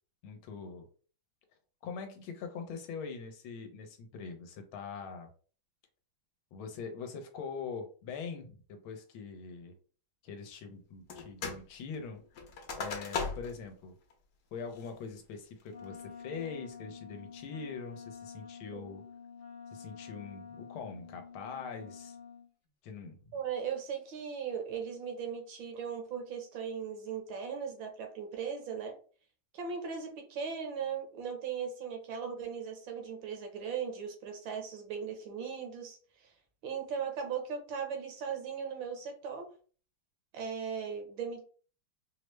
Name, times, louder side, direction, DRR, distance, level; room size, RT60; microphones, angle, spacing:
voice 1, 0.2-0.9 1.8-5.3 6.5-9.8 10.2-12.2 12.8-14.0 14.5-19.0 19.7-22.2 22.8-23.2, left 5 dB, 90° left, 5 dB, 1.6 m, -43 dB
sound 1, 11.1-11.7 11.9-13.6 14.1-14.2 14.7-15.1 15.6-16.0, left 4 dB, 60° left, 1.2 m, -38 dB
Wind instrument woodwind instrument, 15.7-22.5, left 6 dB, 40° left, 0.6 m, -48 dB
voice 2, 23.3-29.0 29.5-36.0 36.6-39.5 40.3-41.4, right 6 dB, 70° right, 4 dB, 1.5 m, -38 dB
4.9 x 2.1 x 3.1 m, 0.40 s
omnidirectional pair, 2.3 m